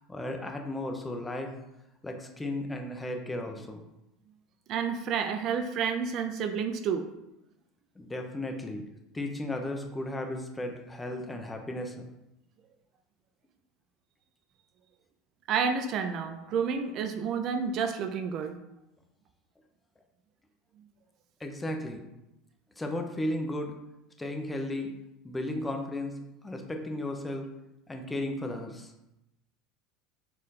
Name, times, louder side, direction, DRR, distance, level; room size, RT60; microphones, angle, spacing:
voice 1, 0.0-1.5 2.0-3.8 8.0-8.9 9.1-12.0 21.4-22.0 22.8-23.8 24.2-24.9 25.2-26.2 26.4-27.5 27.9-28.9, left 1 dB, 10° left, 3 dB, 0.6 m, -35 dB
voice 2, 4.7-7.1 15.5-18.6, right 6 dB, 50° right, 6 dB, 0.4 m, -30 dB
4.2 x 2.5 x 4.0 m, 0.90 s
supercardioid pair, 100°, 0 cm